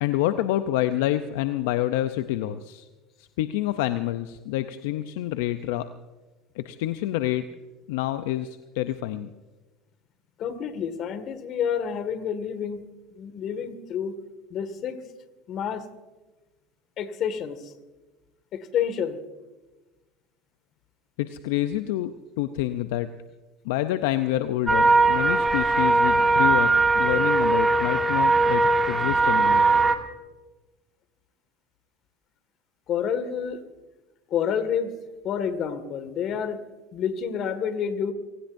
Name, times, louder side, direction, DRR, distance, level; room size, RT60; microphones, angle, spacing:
voice 1, 0.0-2.9 3.4-5.9 6.6-7.4 7.9-9.3 21.2-23.1 23.6-29.6, left 14 dB, 75° left, 10 dB, 0.6 m, -27 dB
voice 2, 10.4-12.8 13.2-14.2 14.5-15.0 15.5-15.8 17.0-17.7 18.5-19.2 32.9-33.6 34.3-34.9 35.2-36.6 36.9-38.1, left 8 dB, 50° left, 11 dB, 2.0 m, -28 dB
sound 1, 24.7-29.9, right 3 dB, 15° right, 2.0 m, -20 dB
29.5 x 18.0 x 2.7 m, 1.2 s
supercardioid pair, 90°, 0 cm